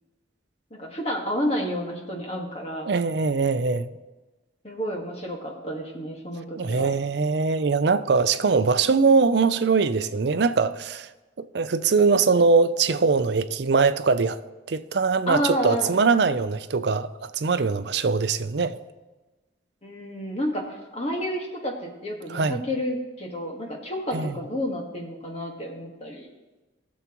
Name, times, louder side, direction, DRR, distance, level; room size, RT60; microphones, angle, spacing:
voice 1, 0.7-2.9 4.6-6.9 15.3-15.9 19.8-26.3, equal, 35° left, 1.5 m, -30 dB
voice 2, 2.9-3.9 6.6-11.1 11.4-14.4 14.7-18.8 22.3-22.6 24.1-24.3, right 4 dB, 60° right, 0.5 m, -22 dB
16.5 x 7.1 x 3.0 m
head